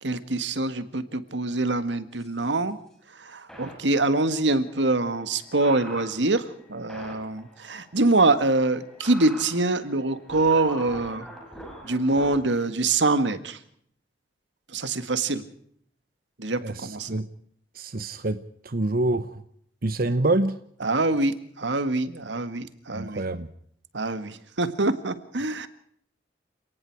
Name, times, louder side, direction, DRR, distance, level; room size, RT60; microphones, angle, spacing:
voice 1, 0.0-2.8 3.2-11.3 11.8-13.6 14.7-15.4 16.4-17.2 20.8-23.2 23.9-25.7, right 2 dB, 85° right, 11 dB, 1.8 m, -25 dB
sound 1, 2.1-2.4 3.5-12.4, equal, 5° left, 6.3 m, -44 dB
voice 2, 16.6-17.3 17.7-19.4 19.8-20.6 22.9-23.5, right 2 dB, 55° right, 12 dB, 0.9 m, -26 dB
29.5 x 18.5 x 4.7 m, 0.65 s
head